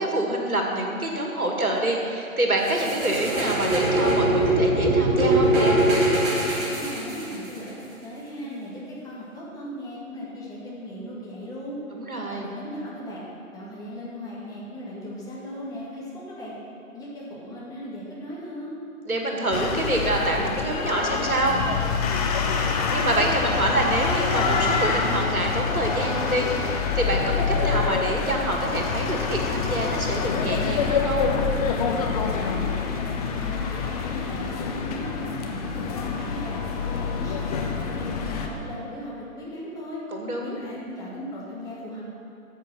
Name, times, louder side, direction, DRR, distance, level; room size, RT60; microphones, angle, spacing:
voice 1, 0.0-5.8 11.9-12.5 19.1-21.6 22.9-31.3 40.1-40.6, right 1 dB, 90° right, 0 dB, 2.2 m, -26 dB
sound 1, 2.6-7.6, right 1 dB, 25° right, 3.2 m, -22 dB
voice 2, 6.3-11.8 12.3-13.2 13.5-16.5 16.9-18.8 32.2-36.6 36.9-40.0 40.4-42.0, left 1 dB, 10° left, -7 dB, 2.1 m, -37 dB
sound 2, 19.5-38.5, left 5 dB, 25° left, 1.0 m, -26 dB
13.5 x 7.4 x 6.2 m, 2.5 s
figure-of-eight pair, 130°, 42 cm